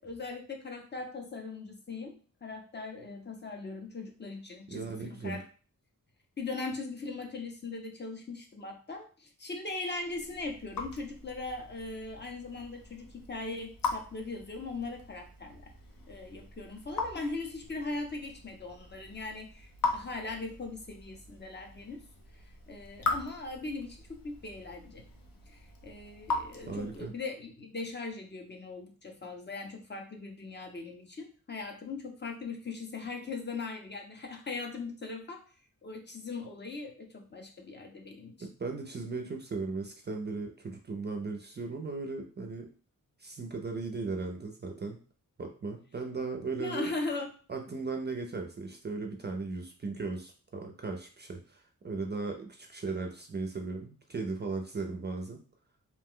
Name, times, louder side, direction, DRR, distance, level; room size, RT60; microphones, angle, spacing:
voice 1, 0.0-5.4 6.4-15.7 16.1-22.0 22.7-25.0 25.5-35.4 35.8-38.3 46.5-47.3, left 3 dB, 35° left, 2 dB, 0.5 m, -39 dB
voice 2, 4.7-5.4 26.7-27.1 38.4-42.7 43.2-45.0 45.4-46.9 47.5-55.4, right 3 dB, 30° right, 2 dB, 0.4 m, -37 dB
Raindrop / Drip, 10.0-27.2, left 3 dB, 80° left, 0.7 m, -40 dB
2.5 x 2.1 x 3.6 m, 0.39 s
wide cardioid pair, 140°, 33 cm